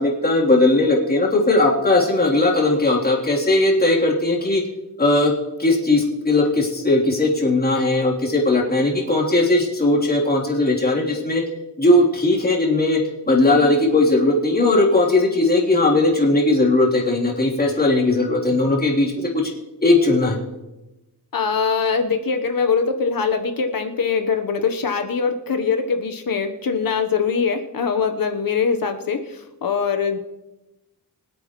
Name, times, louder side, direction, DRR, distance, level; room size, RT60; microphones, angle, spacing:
voice 1, 0.0-4.6 5.0-5.3 5.6-11.4 11.8-13.0 13.3-19.5 19.8-20.4, left 2 dB, 20° left, -3 dB, 3.4 m, -18 dB
voice 2, 21.3-30.2, left 5 dB, 55° left, 5 dB, 1.1 m, -22 dB
24.5 x 8.5 x 3.1 m, 0.98 s
wide cardioid pair, 100°, 41 cm